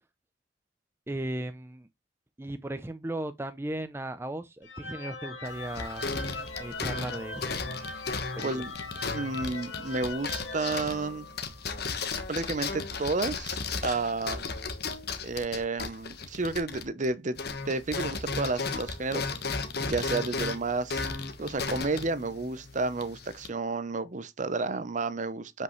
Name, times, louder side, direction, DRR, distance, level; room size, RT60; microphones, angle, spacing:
voice 1, 1.1-1.9 2.4-6.1 6.6-7.7 8.4-8.6, right 1 dB, 15° right, 0.4 m, -36 dB
sound 1, 4.6-11.6, left 3 dB, 75° left, 2.1 m, -40 dB
sound 2, 5.5-17.1 17.3-23.5, left 4 dB, 55° left, 1.3 m, -35 dB
voice 2, 9.1-11.3 12.3-14.5 15.2-17.4 17.7-21.0 21.4-25.6, right 3 dB, 40° right, 0.7 m, -31 dB
7.9 x 5.4 x 3.1 m
head